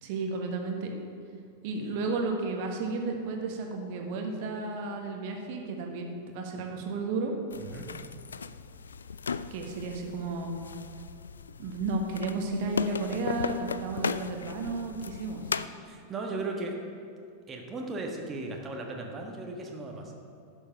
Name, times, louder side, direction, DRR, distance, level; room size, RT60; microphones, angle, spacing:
voice 1, 0.0-1.0 1.6-7.3 9.5-10.5 11.6-15.4, right 3 dB, 50° right, 2 dB, 1.4 m, -33 dB
sound 1, 7.5-15.7, left 5 dB, 70° left, 0.3 m, -37 dB
voice 2, 15.8-16.7 17.5-20.1, right 2 dB, 20° right, 1 dB, 1.4 m, -36 dB
11.5 x 7.1 x 5.7 m, 2.5 s
figure-of-eight pair, 90°, 0 cm